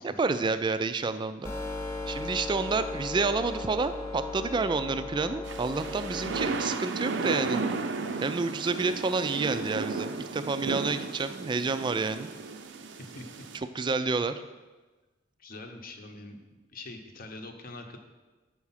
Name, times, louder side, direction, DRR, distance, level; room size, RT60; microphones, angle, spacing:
voice 1, 0.0-1.5 2.1-7.6 8.2-12.3 13.8-14.3, right 4 dB, 25° right, 11 dB, 0.3 m, -29 dB
sound 1, 1.4-6.4, left 2 dB, 15° left, 1.0 m, -36 dB
sound 2, 5.5-13.6, right 3 dB, 75° right, 0.5 m, -34 dB
voice 2, 13.0-13.4 15.4-16.4 16.7-18.0, left 2 dB, 55° left, 4 dB, 0.8 m, -44 dB
6.9 x 4.8 x 5.7 m, 1.2 s
head